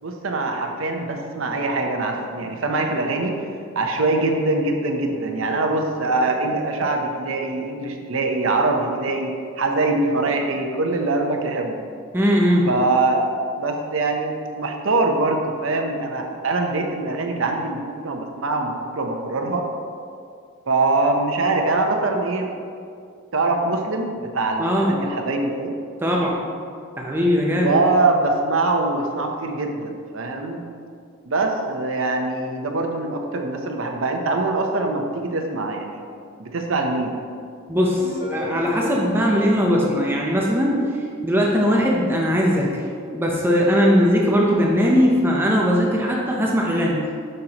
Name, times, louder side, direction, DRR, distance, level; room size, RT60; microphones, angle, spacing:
voice 1, 0.0-3.5 3.7-11.9 12.7-19.6 20.7-22.5 23.3-25.8 27.5-30.6 31.2-36.0 36.4-37.2, right 2 dB, 65° right, 3 dB, 0.7 m, -23 dB
voice 2, 12.1-12.7 24.6-25.0 26.0-26.4 27.0-27.7 37.7-40.7 41.2-42.8 43.1-47.0, equal, 10° right, -2 dB, 0.6 m, -19 dB
sound 1, 38.0-40.9, left 1 dB, 40° left, 1.7 m, -34 dB
7.9 x 6.6 x 2.9 m, 2.3 s
head